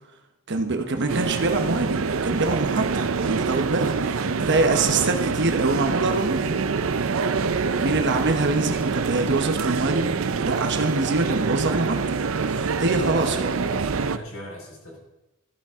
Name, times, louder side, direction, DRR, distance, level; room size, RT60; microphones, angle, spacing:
voice 1, 0.5-6.6 7.8-10.1 10.4-12.0 12.4-13.5, right 3 dB, 60° right, 5 dB, 1.1 m, -25 dB
sound 1, 1.1-14.2, right 5 dB, 75° right, 0.6 m, -25 dB
voice 2, 4.0-4.4 7.7-8.0 12.9-15.0, equal, 85° left, -3 dB, 5.4 m, -39 dB
14.5 x 13.0 x 3.7 m, 0.99 s
head